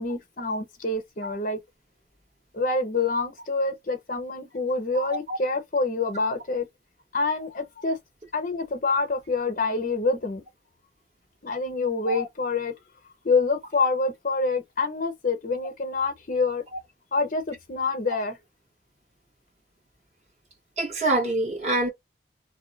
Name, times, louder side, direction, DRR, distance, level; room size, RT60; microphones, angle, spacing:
voice 1, 0.0-1.6 2.5-6.7 7.1-8.0 8.3-10.4 11.4-12.7 13.2-16.6 17.1-18.4, left 3 dB, 50° left, 0.8 m, -26 dB
voice 2, 4.9-5.4 12.1-12.3 20.8-21.9, right 2 dB, 40° right, 1.1 m, -26 dB
2.7 x 2.1 x 3.9 m
head